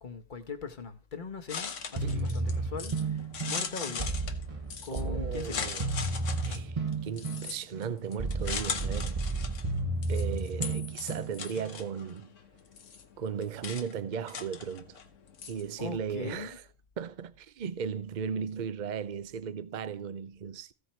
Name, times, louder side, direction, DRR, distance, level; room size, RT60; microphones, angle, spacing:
voice 1, 0.0-4.2 4.8-5.7 15.8-16.5, left 4 dB, 40° left, 1.4 m, -40 dB
sound 1, 1.5-16.0, left 6 dB, 80° left, 1.4 m, -40 dB
sound 2, 2.0-11.7, right 3 dB, 30° right, 1.1 m, -33 dB
voice 2, 2.0-2.6 4.9-5.9 6.4-9.2 10.1-12.3 13.2-15.0 15.5-16.6 17.0-20.7, right 7 dB, 45° right, 0.7 m, -36 dB
15.0 x 5.2 x 4.4 m
omnidirectional pair, 1.3 m